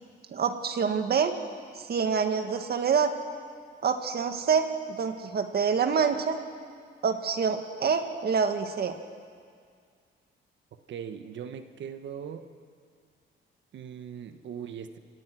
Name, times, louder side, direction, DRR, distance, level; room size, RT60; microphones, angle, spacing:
voice 1, 0.3-1.3 1.7-3.1 3.8-6.4 7.0-9.0, right 6 dB, 50° right, 7 dB, 1.8 m, -26 dB
voice 2, 10.9-12.5 13.7-15.0, right 8 dB, 70° right, 8 dB, 1.3 m, -39 dB
29.0 x 17.5 x 6.2 m, 2.1 s
cardioid pair, 90°, 20 cm